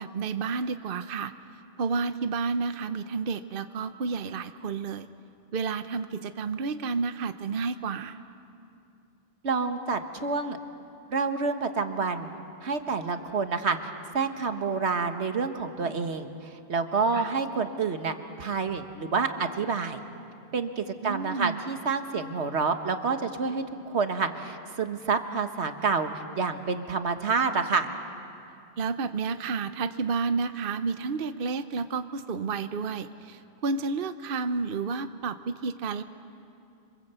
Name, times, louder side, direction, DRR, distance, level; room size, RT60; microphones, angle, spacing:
voice 1, 0.0-1.3 1.8-5.1 5.5-8.2 17.1-17.3 21.0-21.6 28.8-36.0, right 4 dB, 60° right, 10 dB, 1.0 m, -31 dB
voice 2, 9.4-10.6 11.1-12.3 12.6-13.8 14.1-20.0 20.5-26.1 26.4-27.9, right 4 dB, 85° right, 7 dB, 1.7 m, -28 dB
26.5 x 26.5 x 8.2 m, 2.6 s
omnidirectional pair, 1.1 m